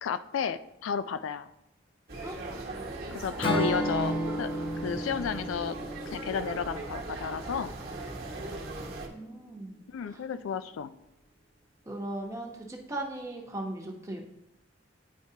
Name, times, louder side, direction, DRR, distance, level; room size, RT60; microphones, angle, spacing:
voice 1, 0.0-1.5 3.1-4.5 4.8-5.8 6.1-7.7 9.9-10.9, left 7 dB, 85° left, 13 dB, 0.3 m, -32 dB
sound 1, 2.1-9.1, right 2 dB, 50° right, 1.1 m, -39 dB
Acoustic guitar / Strum, 3.4-7.5, equal, 25° left, 0.8 m, -33 dB
voice 2, 9.1-9.8 10.1-10.2 11.9-14.2, right 1 dB, 15° right, 0 dB, 0.9 m, -38 dB
9.3 x 4.4 x 2.8 m, 0.85 s
head